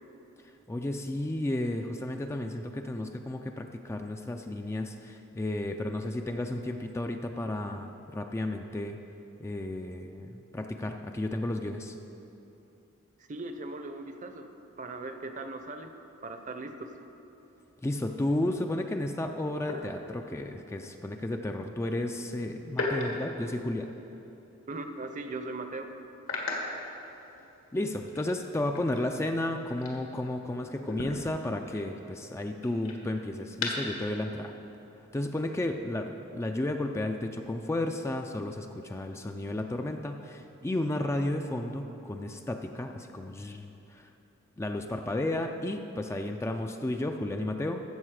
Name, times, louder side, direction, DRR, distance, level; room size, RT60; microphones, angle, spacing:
voice 1, 0.7-9.0 9.4-11.9 17.8-23.9 27.7-34.5 35.1-44.1 44.6-47.8, left 1 dB, 15° left, 5 dB, 0.3 m, -33 dB
voice 2, 13.3-14.5 14.8-15.9 16.2-17.1 24.7-25.9, right 2 dB, 40° right, 7 dB, 0.7 m, -39 dB
sound 1, 19.6-20.5 22.7-24.3 24.7-24.9 25.3-25.4 26.2-27.7 28.0-30.5 30.8-34.0, left 2 dB, 75° left, 1.6 m, -38 dB
13.5 x 7.2 x 4.8 m, 2.9 s
head